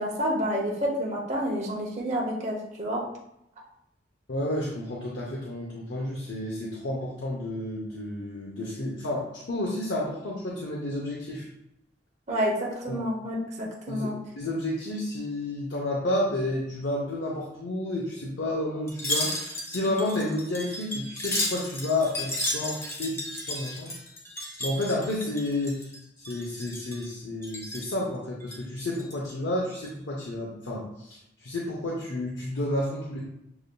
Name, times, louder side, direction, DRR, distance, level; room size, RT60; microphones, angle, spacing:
voice 1, 0.0-3.0 12.3-14.2, equal, 40° right, -3 dB, 0.8 m, -29 dB
voice 2, 4.3-11.5 12.9-13.0 13.9-14.1 14.4-23.9 24.6-25.9 26.2-33.2, left 1 dB, 70° left, -3 dB, 0.7 m, -31 dB
Wind chime, 18.9-26.0 26.2-27.1 27.4-28.0 28.4-29.3 29.7-29.9, left 1 dB, 15° left, 0.8 m, -33 dB
6.9 x 2.5 x 2.2 m, 0.82 s
head